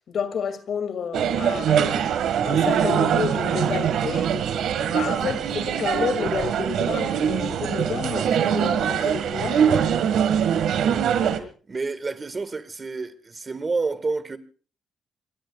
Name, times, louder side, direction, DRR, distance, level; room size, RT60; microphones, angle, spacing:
voice 1, 0.1-2.0 2.4-4.3 4.8-9.9, left 6 dB, 60° left, 2.4 m, -30 dB
sound 1, 1.1-11.4, right 8 dB, 75° right, 1.8 m, -23 dB
voice 2, 11.7-14.4, right 3 dB, 30° right, 1.7 m, -29 dB
26.0 x 22.5 x 2.4 m
cardioid pair, 90°, 0 cm